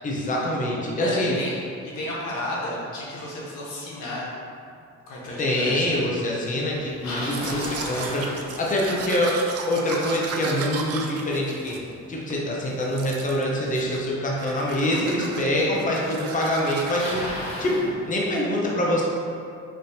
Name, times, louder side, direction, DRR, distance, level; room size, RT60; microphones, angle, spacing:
voice 1, 0.0-1.4 5.4-8.3 8.6-9.4 9.7-11.8 12.1-17.3 17.6-19.0, left 1 dB, 25° left, -3 dB, 0.7 m, -25 dB
voice 2, 1.0-4.3 5.1-5.8, left 1 dB, 85° left, -5 dB, 1.1 m, -32 dB
Bicycle, 6.7-9.0 14.1-14.2 15.0-15.1 16.1-16.2 16.4-17.9, left 1 dB, 60° left, 1.1 m, -34 dB
Domestic sounds home sounds, 7.2-12.4 12.8-13.4 13.7-14.1 14.4-17.3, right 5 dB, 55° right, 0.5 m, -36 dB
5.3 x 2.7 x 2.7 m, 2.4 s
cardioid pair, 90°, 30 cm